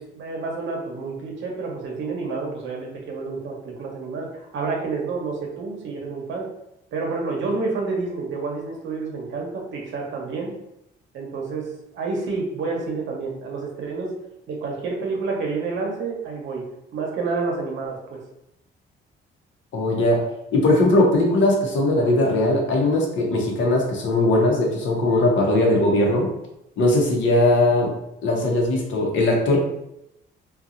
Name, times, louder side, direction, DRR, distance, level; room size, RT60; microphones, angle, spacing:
voice 1, 0.0-6.5 6.9-10.5 11.1-11.7 11.9-14.1 14.5-16.6 16.9-18.2, right 4 dB, 75° right, 0 dB, 0.8 m, -29 dB
voice 2, 19.7-26.3 26.8-27.9 28.2-29.6, left 1 dB, 70° left, 0 dB, 0.8 m, -19 dB
2.7 x 2.3 x 2.5 m, 0.83 s
cardioid pair, 90°, 20 cm